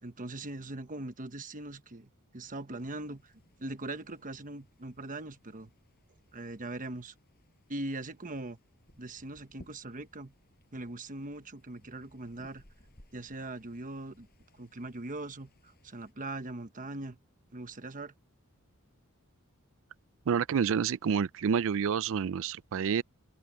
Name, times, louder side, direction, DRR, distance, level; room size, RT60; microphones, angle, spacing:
voice 1, 0.0-3.3 3.6-5.7 6.3-7.1 7.7-8.6 9.0-10.3 10.7-12.6 13.1-14.3 14.6-17.2 17.5-18.1, right 2 dB, 40° right, 1.2 m, -41 dB
sound 1, 2.9-16.1, left 1 dB, 45° left, 6.6 m, -62 dB
voice 2, 20.3-23.0, right 7 dB, 65° right, 0.4 m, -28 dB
open air
head